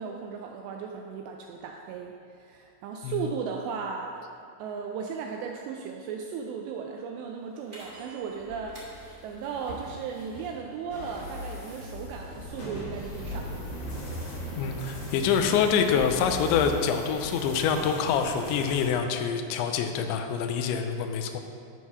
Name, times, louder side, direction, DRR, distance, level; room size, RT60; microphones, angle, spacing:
voice 1, 0.0-4.2 4.6-8.7 9.2-13.6, right 6 dB, 85° right, 2 dB, 2.4 m, -36 dB
sound 1, 7.7-16.8, equal, 25° right, 1.8 m, -41 dB
sound 2, 10.9-18.9, equal, 55° left, 3.6 m, -40 dB
voice 2, 14.6-21.4, left 7 dB, 80° left, 6 dB, 2.7 m, -26 dB
12.5 x 4.7 x 5.6 m, 2.4 s
omnidirectional pair, 5.6 m